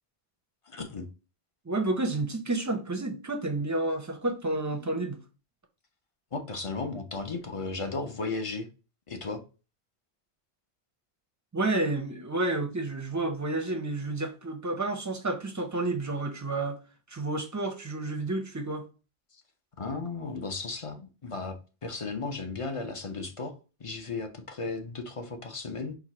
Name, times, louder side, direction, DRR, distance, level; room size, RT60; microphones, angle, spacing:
voice 1, 0.7-1.1 6.3-8.7 9.1-9.4 19.3-19.4 19.8-21.5 21.8-26.0, left 3 dB, 35° left, 0.6 m, -35 dB
voice 2, 1.7-5.2 11.5-16.8 17.1-18.8, right 2 dB, 20° right, 0.5 m, -30 dB
4.7 x 2.2 x 4.2 m
omnidirectional pair, 1.1 m